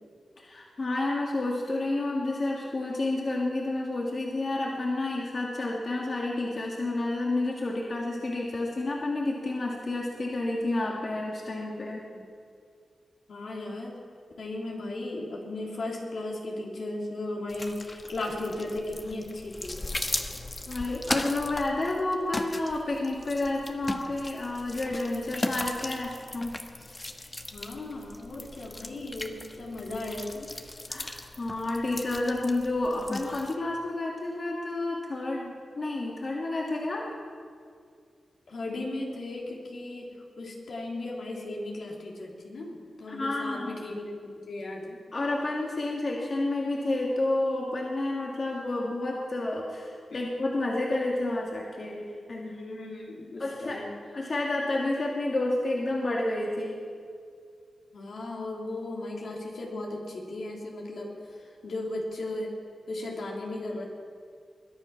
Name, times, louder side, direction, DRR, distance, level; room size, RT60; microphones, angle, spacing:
voice 1, 0.4-12.0 20.7-26.5 30.9-37.1 43.1-43.8 45.1-52.6 53.4-53.8 54.1-56.8, left 2 dB, 50° left, -2 dB, 2.2 m, -30 dB
voice 2, 13.3-14.0 14.4-19.8 27.5-30.5 38.5-40.1 40.4-45.0 50.1-50.2 52.4-53.9 57.9-62.5 62.9-63.8, left 2 dB, 75° left, -2 dB, 3.2 m, -36 dB
sound 1, 17.5-33.5, left 2 dB, 30° left, 1.2 m, -38 dB
21.5 x 10.0 x 5.9 m, 2.2 s
cardioid pair, 55°, 0 cm